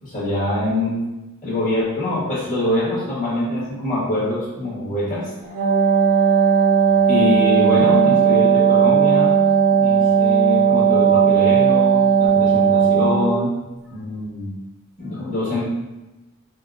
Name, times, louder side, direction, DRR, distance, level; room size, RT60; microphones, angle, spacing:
voice 1, 0.0-1.0 1.4-5.3 7.1-9.4 9.7-13.5 13.9-14.5 15.0-15.6, left 1 dB, 35° left, -9 dB, 1.5 m, -24 dB
Wind instrument woodwind instrument, 5.4-13.4, right 7 dB, 35° right, 0.5 m, -16 dB
4.7 x 2.2 x 2.4 m, 1.0 s
head